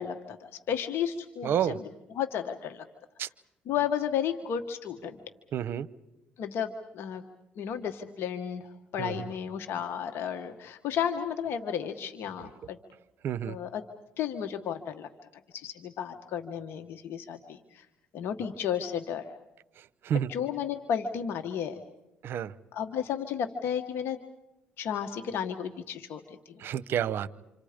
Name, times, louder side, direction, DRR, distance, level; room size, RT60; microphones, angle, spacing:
voice 1, 0.0-1.8 2.1-2.8 3.7-5.2 6.4-7.2 7.6-12.8 13.5-13.8 14.2-15.1 15.5-17.8 18.1-19.2 20.3-21.8 22.7-24.2 24.8-26.6, left 8 dB, 70° left, 6 dB, 1.4 m, -33 dB
voice 2, 1.4-1.8 3.2-3.3 5.5-5.9 9.0-9.3 13.2-13.6 19.8-20.3 22.2-22.5 26.6-27.3, right 9 dB, 65° right, 19 dB, 0.8 m, -30 dB
28.5 x 27.0 x 5.1 m, 0.94 s
cardioid pair, 85°, 4 cm